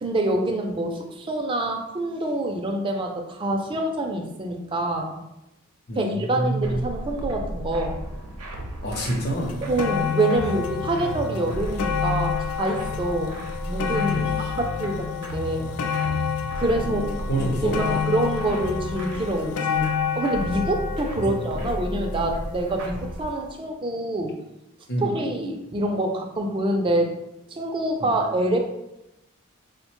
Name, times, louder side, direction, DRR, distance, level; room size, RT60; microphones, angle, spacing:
voice 1, 0.0-5.2 6.0-8.0 9.6-15.7 16.6-17.0 17.4-24.3 25.0-27.1 27.5-28.6, right 1 dB, 25° right, 3 dB, 0.3 m, -26 dB
voice 2, 5.9-6.8 8.8-9.6 10.4-10.5 10.9-11.0 14.1-14.6 16.8-18.0 21.2-21.3 24.9-25.2 28.0-28.1, equal, 50° left, -1 dB, 0.7 m, -28 dB
sound 1, 6.6-23.2, right 1 dB, 90° right, 0.6 m, -34 dB
sound 2, 9.1-9.2 9.5-22.7 23.5-23.6, left 8 dB, 80° left, 0.4 m, -29 dB
4.0 x 2.1 x 3.0 m, 0.89 s
head